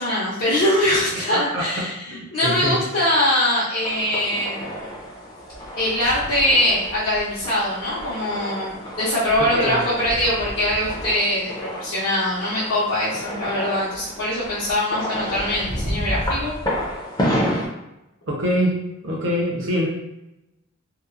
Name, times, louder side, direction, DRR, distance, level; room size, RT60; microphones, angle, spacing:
voice 1, 0.0-4.8 5.8-16.5, left 1 dB, 65° left, -10 dB, 0.6 m, -22 dB
voice 2, 1.3-2.8 9.4-9.8 18.3-19.9, equal, 60° right, -2 dB, 0.6 m, -25 dB
sound 1, 3.8-17.7, equal, 20° left, 0.4 m, -30 dB
2.8 x 2.0 x 2.4 m, 0.92 s
head